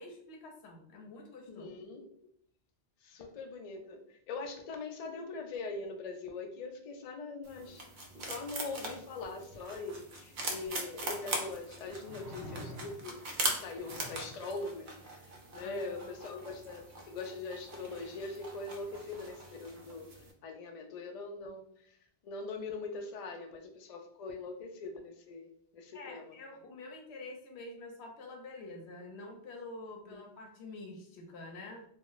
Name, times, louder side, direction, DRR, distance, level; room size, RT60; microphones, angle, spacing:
voice 1, 0.0-1.7 3.1-3.2 10.5-10.7 15.6-16.1 25.9-31.9, left 2 dB, 85° left, 3 dB, 0.9 m, -47 dB
voice 2, 1.5-2.0 3.0-13.2 13.5-15.0 15.5-20.1 20.4-21.7 22.2-25.5 25.7-26.4 30.1-30.2, left 3 dB, 55° left, 4 dB, 0.4 m, -42 dB
sound 1, 7.4-20.3, right 2 dB, 60° right, 0.6 m, -41 dB
sound 2, 10.7-10.8 12.0-13.2 13.8-14.5 16.4-16.5, equal, 20° right, 0.7 m, -47 dB
2.3 x 2.0 x 3.8 m, 0.65 s
omnidirectional pair, 1.1 m